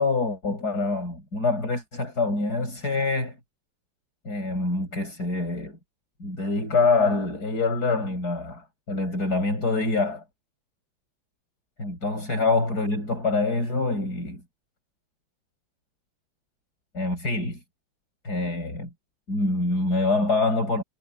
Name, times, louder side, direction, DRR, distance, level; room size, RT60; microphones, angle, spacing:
voice 1, 0.0-3.4 4.2-5.8 6.2-10.2 11.8-14.4 16.9-17.6 18.2-18.9 19.3-20.8, left 3 dB, 50° left, 8.5 m, -25 dB
omnidirectional pair, 2.2 m